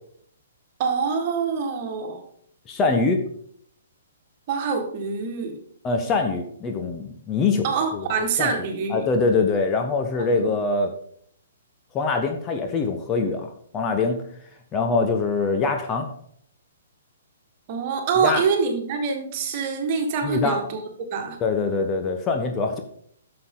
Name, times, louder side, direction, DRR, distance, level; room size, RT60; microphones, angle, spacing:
voice 1, 0.8-2.2 4.5-5.6 7.6-9.1 10.2-10.5 17.7-21.4, right 5 dB, 40° right, 3 dB, 2.0 m, -25 dB
voice 2, 2.7-3.2 5.8-7.6 7.9-8.1 8.4-8.6 8.9-10.9 11.9-14.2 14.7-16.1 18.2-18.4 20.2-20.6 21.4-22.8, left 4 dB, 20° left, 4 dB, 1.1 m, -23 dB
11.0 x 6.9 x 3.9 m, 0.64 s
figure-of-eight pair, 120°, 0 cm